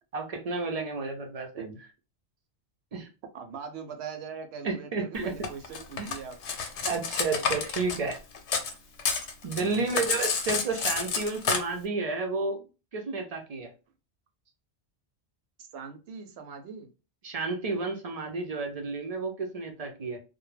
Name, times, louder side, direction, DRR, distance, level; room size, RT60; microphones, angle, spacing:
voice 1, 0.1-1.5 2.9-3.1 4.6-5.3 6.0-6.2 6.9-8.2 9.4-12.6 12.9-13.7 17.2-20.2, right 3 dB, 50° right, 3 dB, 0.5 m, -31 dB
voice 2, 3.3-6.4 9.6-10.0 15.6-16.9, right 6 dB, 75° right, 6 dB, 0.8 m, -41 dB
Cutlery silverware, 5.4-8.7 9.0-11.6, left 5 dB, 85° left, 0.9 m, -29 dB
2.2 x 2.0 x 3.1 m, 0.31 s
omnidirectional pair, 1.1 m